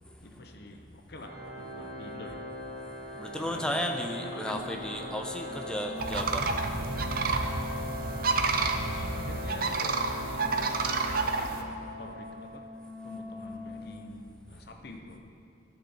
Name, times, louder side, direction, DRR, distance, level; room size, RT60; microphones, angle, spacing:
voice 1, 0.2-2.5 3.4-3.9 4.3-4.6 4.9-5.3 8.8-12.6 13.0-15.2, left 2 dB, 55° left, 4 dB, 0.8 m, -46 dB
Organ, 1.2-12.0, equal, 70° right, 1.9 m, -41 dB
voice 2, 2.8-6.5 7.6-8.1, equal, 5° left, 3 dB, 0.5 m, -35 dB
Wind instrument woodwind instrument, 5.4-13.9, left 2 dB, 20° left, 1.7 m, -43 dB
sound 1, 6.0-11.6, right 3 dB, 50° right, 0.5 m, -30 dB
12.0 x 6.9 x 4.4 m, 2.5 s
head